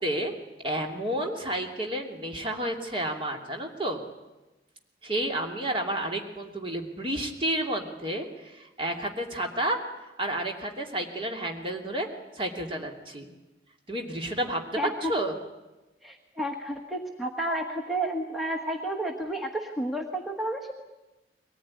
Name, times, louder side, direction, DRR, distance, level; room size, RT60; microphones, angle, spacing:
voice 1, 0.0-0.3 0.6-4.0 5.0-9.8 10.2-12.1 12.3-13.3 13.9-14.6 15.1-15.4, right 1 dB, 30° right, 2 dB, 2.8 m, -31 dB
voice 2, 14.8-15.1 16.0-20.8, right 1 dB, ahead, 0 dB, 1.4 m, -31 dB
23.0 x 19.0 x 9.8 m, 1.1 s
head